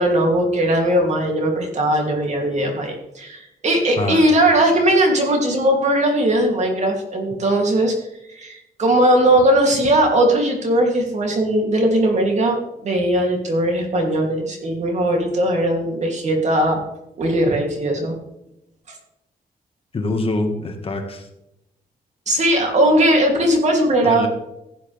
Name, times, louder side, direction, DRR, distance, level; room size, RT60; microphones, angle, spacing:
voice 1, 0.0-7.9 8.3-16.8 17.2-18.2 22.3-24.3, right 1 dB, 45° right, 1 dB, 2.9 m, -19 dB
voice 2, 3.9-4.3 7.3-7.4 19.9-21.3 24.0-24.3, left 2 dB, 35° left, 4 dB, 1.6 m, -24 dB
16.0 x 9.4 x 3.4 m, 0.86 s
wide cardioid pair, 140°, 16 cm